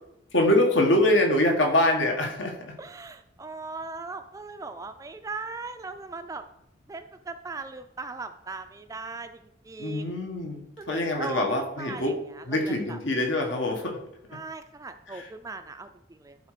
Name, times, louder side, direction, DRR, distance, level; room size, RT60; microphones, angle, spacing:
voice 1, 0.3-2.7 9.8-12.2 12.5-14.0 15.1-15.3, left 1 dB, 75° left, 2 dB, 1.7 m, -24 dB
voice 2, 2.8-6.4 6.9-9.4 9.6-10.1 10.8-11.5 11.8-13.0 14.3-16.4, right 3 dB, 15° right, 9 dB, 0.3 m, -39 dB
11.5 x 4.4 x 5.0 m, 0.83 s
head